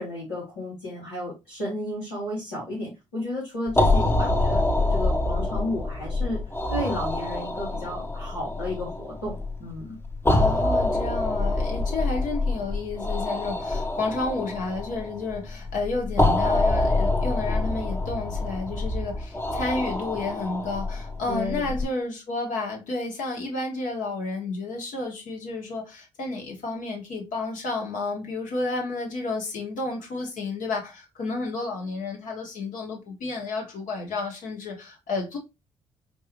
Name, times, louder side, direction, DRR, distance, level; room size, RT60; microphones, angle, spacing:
voice 1, 0.0-4.6 4.9-6.4 6.7-10.0 21.3-21.8, left 1 dB, 90° left, 1.5 m, -33 dB
sound 1, 3.7-21.8, left 2 dB, 15° left, 0.8 m, -26 dB
voice 2, 10.3-35.4, left 3 dB, 65° left, 1.4 m, -31 dB
4.5 x 2.7 x 3.0 m
hypercardioid pair, 40°, 15 cm